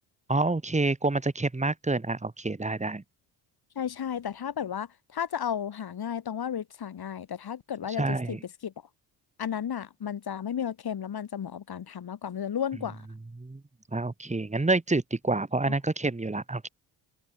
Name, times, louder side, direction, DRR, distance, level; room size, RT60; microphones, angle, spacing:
voice 1, 0.3-3.0 8.0-8.4 13.4-13.6 13.9-16.7, right 2 dB, 15° right, 3.0 m, -28 dB
voice 2, 3.8-8.4 8.6-8.7 9.4-13.0 15.7-15.8, left 8 dB, 55° left, 7.0 m, -33 dB
open air
supercardioid pair, 70°, 44 cm